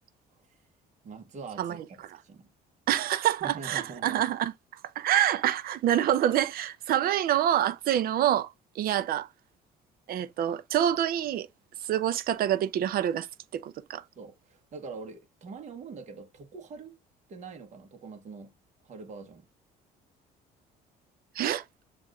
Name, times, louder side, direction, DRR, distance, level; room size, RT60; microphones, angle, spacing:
voice 1, 1.0-2.0 2.2-2.5 3.4-4.3 14.2-17.0 17.3-18.5 18.8-19.5, right 4 dB, 45° right, 1.1 m, -43 dB
voice 2, 2.9-4.5 5.0-9.3 10.1-11.5 11.8-13.3 13.5-14.0 21.4-21.6, right 11 dB, 60° right, 0.6 m, -26 dB
7.2 x 2.5 x 2.3 m
cardioid pair, 110°, 17 cm